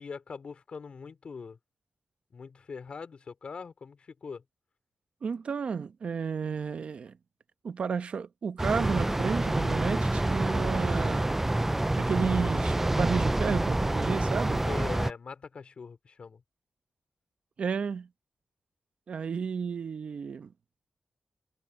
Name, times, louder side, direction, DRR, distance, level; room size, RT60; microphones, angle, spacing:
voice 1, 0.0-1.6 2.3-4.4 14.7-16.4, left 5 dB, 60° left, 3.7 m, -42 dB
voice 2, 5.2-7.1 7.6-11.3 12.0-14.6 17.6-18.1 19.1-20.5, right 6 dB, 65° right, 1.0 m, -32 dB
sound 1, 8.6-15.1, right 1 dB, 15° right, 0.3 m, -27 dB
wide cardioid pair, 105°, 2 cm